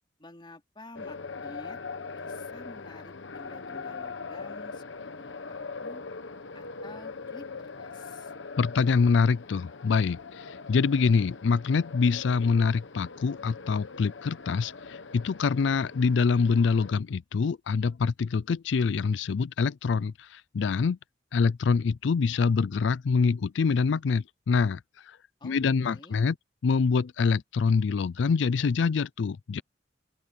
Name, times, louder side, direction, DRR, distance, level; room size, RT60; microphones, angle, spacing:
voice 1, 0.2-1.8 2.1-4.9 5.2-6.0 6.5-8.3 25.4-26.2, left 2 dB, 25° left, 3.2 m, -50 dB
sound 1, 0.9-16.9, left 4 dB, 90° left, 1.1 m, -41 dB
voice 2, 8.6-21.0 21.3-24.8 25.1-25.2 25.4-26.4 26.6-29.6, left 5 dB, 75° left, 0.4 m, -25 dB
open air
head